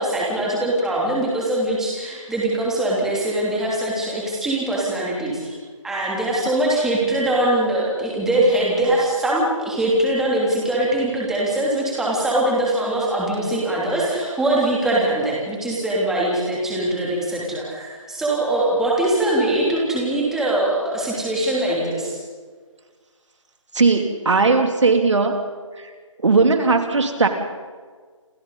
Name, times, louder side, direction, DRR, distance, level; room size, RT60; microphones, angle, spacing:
voice 1, 0.0-5.5 5.8-22.2, right 1 dB, 5° right, -5 dB, 3.0 m, -22 dB
voice 2, 23.7-25.4 25.8-25.9 26.2-27.3, right 4 dB, 65° right, 5 dB, 2.9 m, -18 dB
28.0 x 27.0 x 4.1 m, 1.5 s
figure-of-eight pair, 165°, 17 cm